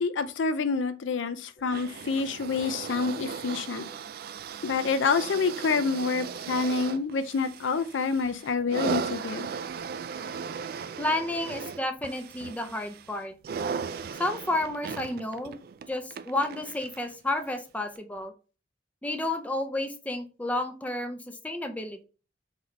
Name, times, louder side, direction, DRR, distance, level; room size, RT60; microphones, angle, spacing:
voice 1, 0.0-3.9 4.6-9.5, left 4 dB, 90° left, 0.5 m, -27 dB
sound 1, 1.7-17.1 17.9-18.0, right 6 dB, 55° right, 0.3 m, -37 dB
voice 2, 11.0-13.3 14.2-15.5 15.9-18.3 19.0-22.0, left 1 dB, 10° left, 0.5 m, -31 dB
4.1 x 2.7 x 4.4 m
head